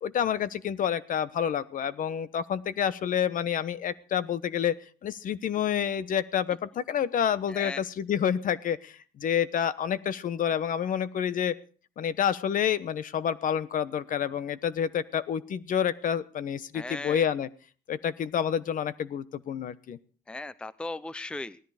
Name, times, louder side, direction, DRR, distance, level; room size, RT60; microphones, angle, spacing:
voice 1, 0.0-4.7 5.0-8.9 9.2-11.5 12.0-17.5 17.9-20.0, left 8 dB, 50° left, 16 dB, 1.0 m, -28 dB
voice 2, 7.5-7.8 16.7-17.3 20.3-21.6, left 2 dB, 5° left, 17 dB, 0.6 m, -37 dB
18.0 x 13.0 x 4.9 m, 0.41 s
cardioid pair, 110°, 17 cm